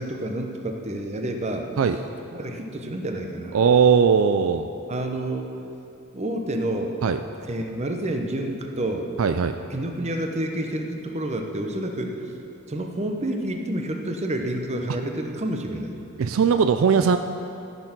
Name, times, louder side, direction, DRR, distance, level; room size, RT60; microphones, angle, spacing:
voice 1, 0.0-1.7 2.3-3.6 4.9-5.5 6.1-7.0 7.5-9.1 9.7-12.2 12.7-15.9, right 1 dB, 30° right, 3 dB, 0.9 m, -29 dB
voice 2, 3.5-4.7 7.0-7.2 9.2-9.6 16.2-17.2, right 6 dB, 75° right, 8 dB, 0.4 m, -19 dB
14.0 x 6.7 x 6.0 m, 2.7 s
head